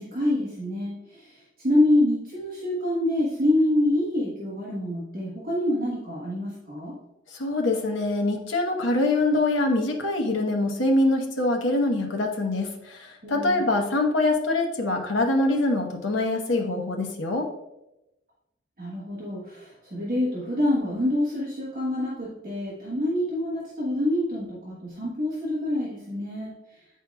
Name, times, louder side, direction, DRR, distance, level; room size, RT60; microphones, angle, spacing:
voice 1, 0.0-6.9 13.2-13.6 18.8-26.8, left 1 dB, 50° right, -6 dB, 1.2 m, -26 dB
voice 2, 7.3-17.5, left 2 dB, 85° left, 2 dB, 1.0 m, -24 dB
9.3 x 4.6 x 2.3 m, 0.93 s
head